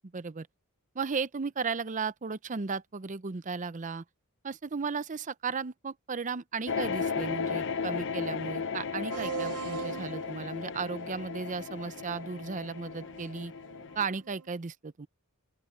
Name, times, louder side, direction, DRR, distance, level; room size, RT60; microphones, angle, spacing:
voice 1, 0.1-0.5 0.9-4.0 4.4-13.5 14.0-15.1, right 5 dB, 35° right, 0.6 m, -35 dB
sound 1, 6.7-14.0, left 5 dB, 55° left, 0.8 m, -35 dB
sound 2, 9.1-14.5, right 7 dB, 85° right, 0.9 m, -42 dB
open air
head